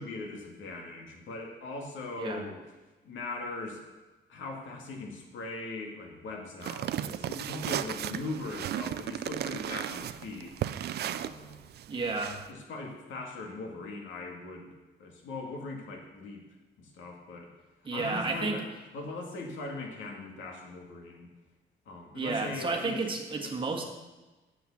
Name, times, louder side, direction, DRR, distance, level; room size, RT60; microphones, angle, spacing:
voice 1, 0.0-2.6 3.0-3.8 4.3-10.5 11.0-11.6 12.5-14.7 15.0-16.4 16.8-17.5 17.9-18.6 18.9-21.3 21.9-23.1 23.4-23.5, left 2 dB, 80° left, 1 dB, 2.1 m, -40 dB
sound 1, 6.6-12.5, right 11 dB, 60° right, 0.4 m, -35 dB
voice 2, 11.9-12.4 17.8-18.6 22.1-23.8, right 3 dB, 25° right, 2 dB, 1.6 m, -31 dB
8.2 x 7.6 x 7.1 m, 1.2 s
cardioid pair, 150°, 19 cm